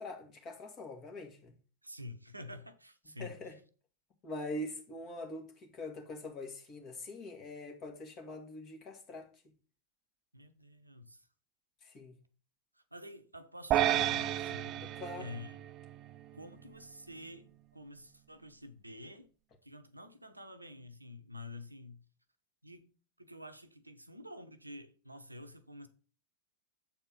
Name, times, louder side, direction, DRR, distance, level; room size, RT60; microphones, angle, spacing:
voice 1, 0.0-1.5 3.2-3.6 4.2-9.3 11.8-12.2 14.8-15.3, left 1 dB, 35° left, 1.9 m, -43 dB
voice 2, 1.8-3.6 10.3-11.3 12.7-15.6 16.3-19.3 19.6-22.0 22.6-25.9, left 1 dB, 85° right, 0.8 m, -49 dB
sound 1, 13.7-16.2, right 12 dB, 35° right, 0.3 m, -32 dB
7.5 x 4.4 x 6.0 m
figure-of-eight pair, 90°, 0 cm